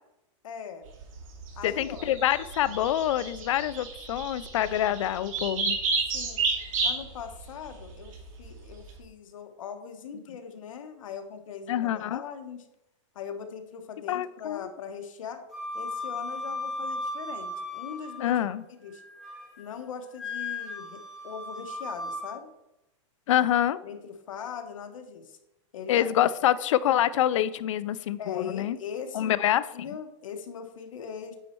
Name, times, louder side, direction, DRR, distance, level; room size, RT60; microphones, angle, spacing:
voice 1, 0.4-0.9 1.6-2.1 6.1-6.4 6.8-8.1 8.4-12.7 13.1-15.4 15.7-18.4 18.8-19.0 19.6-22.5 23.8-25.4 25.7-26.1 28.2-29.4 29.7-31.4, left 7 dB, 90° left, 7 dB, 1.2 m, -40 dB
sound 1, 0.8-9.0, right 4 dB, 85° right, 2.8 m, -32 dB
voice 2, 1.6-5.8 11.7-12.2 14.1-14.7 18.2-18.6 23.3-23.8 25.9-28.8 29.1-29.6, left 11 dB, 70° left, 16 dB, 0.5 m, -26 dB
Wind instrument woodwind instrument, 15.5-18.5 18.9-19.6 20.2-22.4, left 2 dB, ahead, 2.4 m, -36 dB
8.9 x 4.2 x 4.5 m, 0.89 s
supercardioid pair, 165°, 16 cm